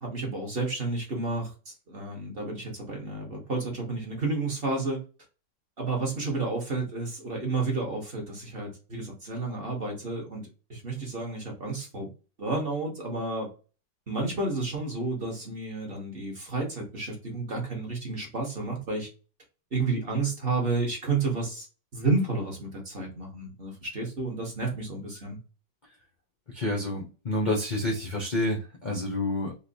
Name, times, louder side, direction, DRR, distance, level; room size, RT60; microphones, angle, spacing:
voice 1, 0.0-5.0 5.8-10.4 10.7-12.1 12.4-13.5 14.1-19.1 19.7-21.7 21.9-25.4, right 3 dB, 35° right, 1.2 m, -31 dB
voice 2, 26.5-29.5, left 1 dB, 55° left, 0.5 m, -29 dB
3.8 x 2.9 x 2.6 m
omnidirectional pair, 2.0 m